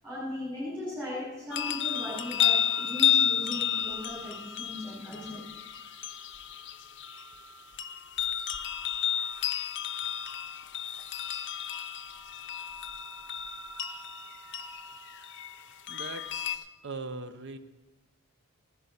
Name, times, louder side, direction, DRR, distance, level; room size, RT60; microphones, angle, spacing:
voice 1, 0.0-5.4, left 1 dB, 15° right, -10 dB, 5.2 m, -38 dB
sound 1, 1.5-16.6, left 9 dB, 55° left, 0.5 m, -32 dB
voice 2, 15.9-17.6, right 3 dB, 50° right, 11 dB, 0.7 m, -40 dB
15.0 x 11.0 x 4.1 m, 1.1 s
head